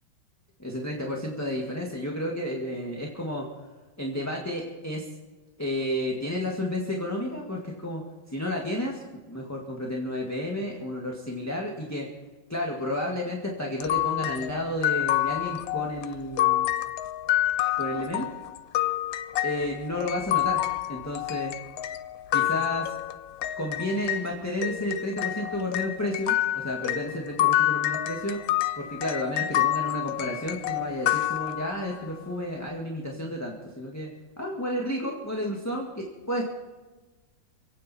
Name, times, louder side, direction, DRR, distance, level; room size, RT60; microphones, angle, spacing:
voice 1, 0.6-3.5 4.0-5.1 5.6-8.0 8.3-12.1 12.5-16.7 17.8-18.3 19.4-20.6 20.9-21.6 22.3-22.9 23.6-28.4 28.8-34.1 34.4-36.4, left 1 dB, 10° left, -2 dB, 1.8 m, -31 dB
sound 1, 13.8-24.3 24.6-32.0, left 14 dB, 80° left, 1.4 m, -28 dB
28.0 x 9.4 x 4.3 m, 1.3 s
omnidirectional pair, 2.1 m